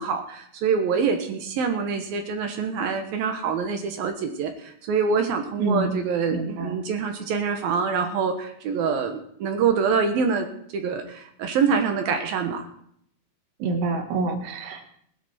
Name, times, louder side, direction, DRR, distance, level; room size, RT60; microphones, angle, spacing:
voice 1, 0.0-10.5 10.7-12.7, right 5 dB, 65° right, 5 dB, 2.6 m, -25 dB
voice 2, 5.6-6.0 6.3-6.8 13.6-14.8, right 3 dB, 90° right, 4 dB, 4.3 m, -27 dB
20.5 x 11.0 x 4.4 m, 0.68 s
omnidirectional pair, 5.3 m